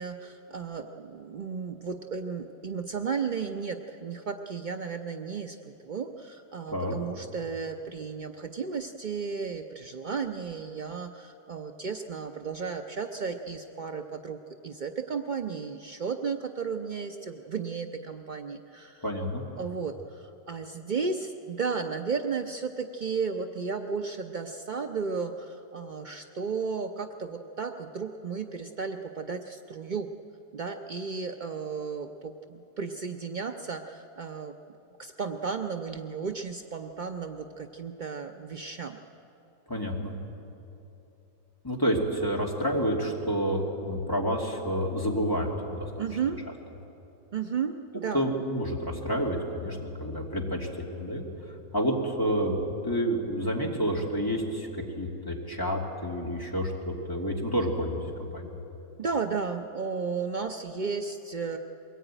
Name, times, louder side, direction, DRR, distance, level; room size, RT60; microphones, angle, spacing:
voice 1, 0.0-5.6 5.8-19.0 19.6-30.1 30.5-34.5 35.0-39.0 46.0-46.4 47.3-48.2 59.0-61.6, right 5 dB, 75° right, 5 dB, 0.4 m, -34 dB
voice 2, 19.0-19.4 39.7-40.2 41.6-46.2 48.1-58.5, equal, 10° left, -2 dB, 2.6 m, -29 dB
22.5 x 18.5 x 9.0 m, 2.9 s
omnidirectional pair, 1.8 m